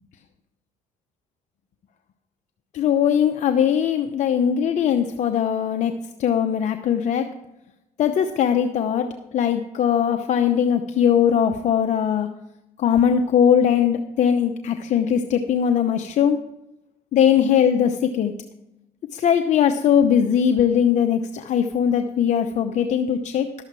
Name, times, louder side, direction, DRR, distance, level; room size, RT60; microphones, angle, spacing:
voice 1, 2.7-5.9 6.2-7.4 8.0-12.3 12.8-16.4 17.1-18.3 19.1-23.5, left 8 dB, 55° left, 7 dB, 0.8 m, -20 dB
11.5 x 7.8 x 4.7 m, 0.90 s
supercardioid pair, 80°, 15 cm